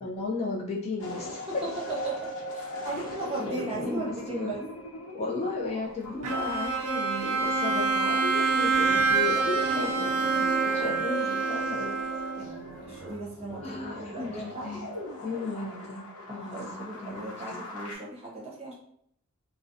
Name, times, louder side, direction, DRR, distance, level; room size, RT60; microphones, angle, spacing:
voice 1, 0.0-1.4 3.4-4.5 5.1-10.4 10.7-12.0 13.6-14.9 15.2-17.6, left 3 dB, 30° left, -3 dB, 0.4 m, -35 dB
sound 1, 1.0-18.0, left 2 dB, 80° left, 0.7 m, -41 dB
sound 2, 1.7-13.2, right 5 dB, ahead, 0.9 m, -39 dB
voice 2, 1.9-2.3 2.5-4.6 10.7-11.0 12.4-14.8 16.3-18.7, right 2 dB, 30° right, -4 dB, 0.8 m, -37 dB
Bowed string instrument, 6.2-12.7, right 4 dB, 90° right, 0.4 m, -27 dB
2.5 x 2.0 x 2.6 m, 0.68 s
head